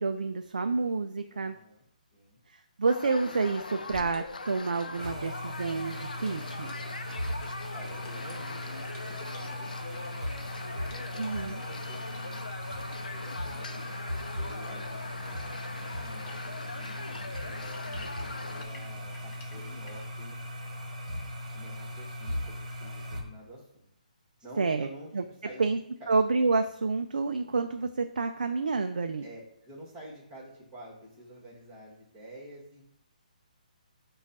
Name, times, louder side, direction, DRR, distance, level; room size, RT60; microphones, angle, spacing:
voice 1, 0.0-1.6 2.5-6.7 11.2-11.6 24.6-24.9 25.1-25.2 25.6-25.8 26.1-29.2, right 4 dB, 75° right, 7 dB, 0.3 m, -29 dB
voice 2, 1.3-1.8 2.1-2.4 7.7-13.9 14.4-17.0 17.4-20.4 21.5-23.9 24.4-26.1 29.2-32.8, equal, 25° right, -7 dB, 1.6 m, -49 dB
sound 1, 2.9-18.7, left 3 dB, 75° left, 0.5 m, -41 dB
sound 2, 3.3-20.1, left 3 dB, 20° left, 0.7 m, -54 dB
sound 3, 5.0-23.2, left 1 dB, 55° right, 1.2 m, -38 dB
5.0 x 2.3 x 4.0 m, 0.73 s
figure-of-eight pair, 140°, 4 cm